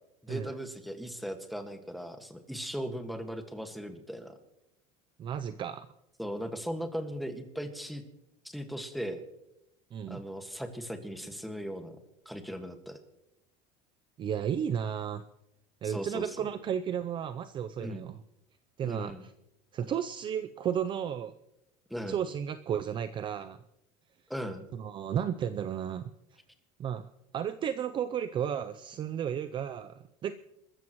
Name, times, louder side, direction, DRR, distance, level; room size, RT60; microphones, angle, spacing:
voice 1, 0.2-4.4 6.2-8.0 8.4-9.2 10.1-11.9 12.3-13.0 15.8-16.5 17.8-18.0 18.8-19.2 21.9-22.2 24.3-24.6, equal, ahead, 5 dB, 1.7 m, -38 dB
voice 2, 5.2-5.9 9.9-10.2 14.2-15.2 15.8-18.2 18.8-19.3 19.7-21.3 22.1-23.6 24.7-26.1 26.8-27.1 27.3-30.3, right 8 dB, 30° right, 11 dB, 0.6 m, -33 dB
27.5 x 14.0 x 3.1 m, 0.87 s
cardioid pair, 140°, 16 cm